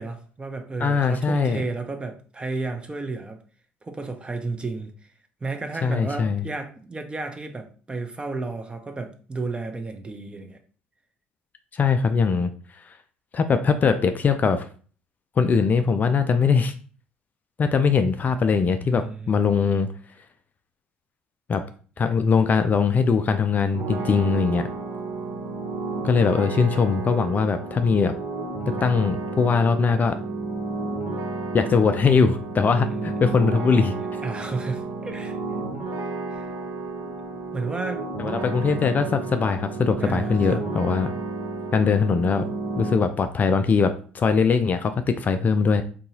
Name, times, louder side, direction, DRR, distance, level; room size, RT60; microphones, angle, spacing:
voice 1, 0.0-3.4 3.8-4.9 5.4-10.6 18.8-19.4 32.8-33.2 34.2-35.4 36.3-36.5 37.0-37.1 37.5-38.1 40.0-40.6, right 3 dB, 20° right, 0.7 m, -32 dB
voice 2, 0.8-1.6 5.8-6.4 11.7-12.5 12.9-13.0 13.3-14.7 15.4-16.7 17.6-19.9 21.5-21.6 22.0-24.7 26.0-28.1 28.8-30.2 31.5-33.9 38.2-41.1 41.7-42.5 42.8-45.8, left 5 dB, 35° left, 0.4 m, -21 dB
sound 1, 23.7-42.9, right 3 dB, 55° right, 1.0 m, -31 dB
3.8 x 2.7 x 2.7 m
hypercardioid pair, 65°, 5 cm